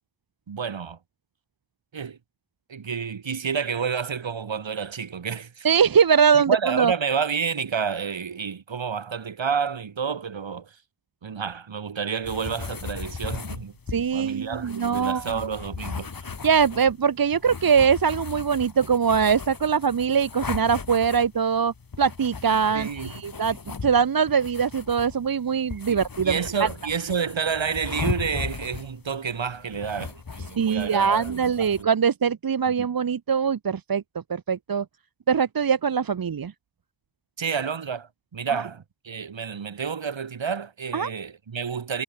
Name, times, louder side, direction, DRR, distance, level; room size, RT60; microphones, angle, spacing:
voice 1, 0.5-1.0 1.9-2.2 2.7-5.7 6.3-10.8 11.2-16.1 22.7-23.1 25.9-31.9 32.7-32.8 37.4-42.0, right 6 dB, 65° right, 2.5 m, -30 dB
voice 2, 5.6-6.9 13.9-15.3 16.4-23.6 23.8-26.7 30.6-34.0 34.3-34.8 35.3-36.5 40.9-41.1, right 6 dB, 45° right, 0.9 m, -22 dB
sound 1, 12.2-31.8, left 5 dB, 45° left, 2.2 m, -37 dB
wide cardioid pair, 75°, 49 cm